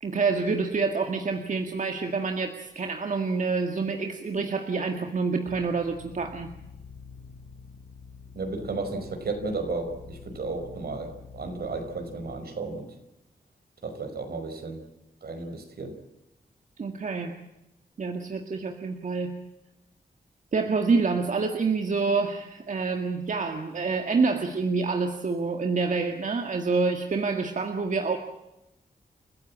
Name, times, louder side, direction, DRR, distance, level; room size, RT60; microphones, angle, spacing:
voice 1, 0.0-6.5 16.8-17.3 18.0-19.3 20.5-28.2, right 4 dB, 50° right, 5 dB, 1.9 m, -27 dB
sound 1, 5.5-12.4, left 5 dB, 65° left, 3.2 m, -47 dB
voice 2, 8.4-12.9 13.8-14.8 15.2-16.0, right 3 dB, 75° right, 6 dB, 5.3 m, -33 dB
29.5 x 15.5 x 8.7 m, 0.92 s
wide cardioid pair, 165°, 16 cm